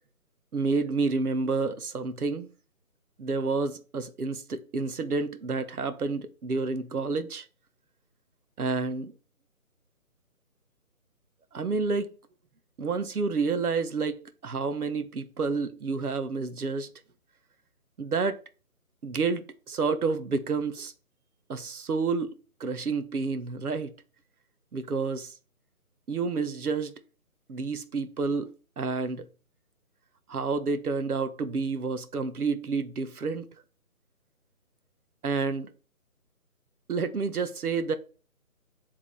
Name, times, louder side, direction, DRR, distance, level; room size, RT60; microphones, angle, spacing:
voice 1, 0.5-2.5 3.2-7.5 8.6-9.1 11.5-12.1 12.8-16.9 18.0-18.4 19.0-20.9 21.5-22.3 22.6-23.9 24.7-25.3 26.1-27.0 27.5-29.3 30.3-33.5 35.2-35.7 36.9-37.9, right 4 dB, 80° right, 1.1 m, -29 dB
8.7 x 3.6 x 3.3 m
hypercardioid pair, 170°, 44 cm